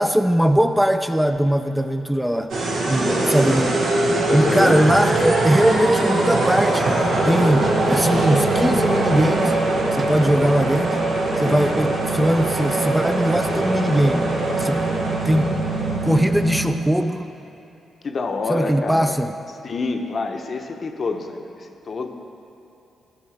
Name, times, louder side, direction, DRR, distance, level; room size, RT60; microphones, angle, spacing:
voice 1, 0.0-2.5 2.9-3.8 4.3-9.5 9.9-11.0 11.4-14.8 15.2-15.6 16.0-17.3 18.5-19.3, equal, 5° right, 8 dB, 0.4 m, -20 dB
sound 1, 2.5-16.7, right 2 dB, 75° right, 1.2 m, -22 dB
voice 2, 3.0-3.5 4.3-4.8 11.3-11.7 18.0-19.2 19.6-22.1, left 3 dB, 50° left, 5 dB, 0.7 m, -27 dB
sound 2, 4.5-8.8 10.0-10.4, right 2 dB, 40° right, 1.3 m, -33 dB
12.5 x 6.2 x 3.3 m, 2.8 s
supercardioid pair, 50°, 0 cm